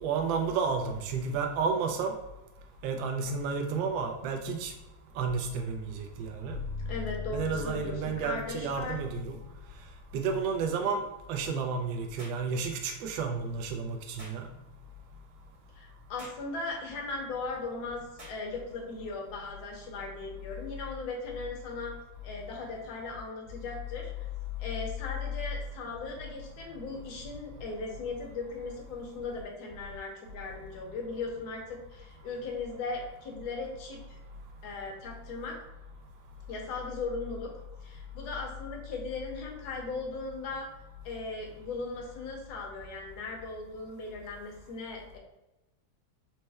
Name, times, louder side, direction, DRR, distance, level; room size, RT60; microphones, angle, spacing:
voice 1, 0.0-2.2 2.8-4.7 5.1-6.6 7.3-9.4 10.1-14.5, right 5 dB, 75° right, 3 dB, 1.2 m, -31 dB
sound 1, 6.5-10.6, left 5 dB, 75° left, 1.7 m, -40 dB
voice 2, 6.9-9.0 15.7-21.9 22.2-24.1 24.6-34.2 34.6-35.6 36.5-37.5 37.8-40.7 41.0-45.2, left 3 dB, 60° left, 0 dB, 1.2 m, -38 dB
sound 2, 12.2-12.5 14.2-14.4 16.2-16.5 18.2-18.4, right 1 dB, 25° right, 0.8 m, -48 dB
4.2 x 2.1 x 3.3 m, 0.98 s
omnidirectional pair, 2.2 m